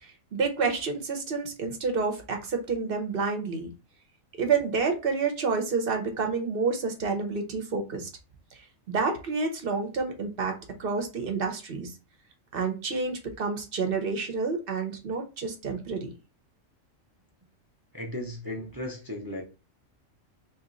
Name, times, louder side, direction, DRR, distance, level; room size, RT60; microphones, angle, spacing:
voice 1, 0.0-3.7 4.4-8.1 8.9-11.9 12.5-16.1, right 4 dB, 50° right, 4 dB, 0.9 m, -29 dB
voice 2, 17.9-19.4, left 1 dB, 25° right, 1 dB, 0.5 m, -35 dB
3.0 x 2.9 x 3.8 m, 0.30 s
omnidirectional pair, 1.4 m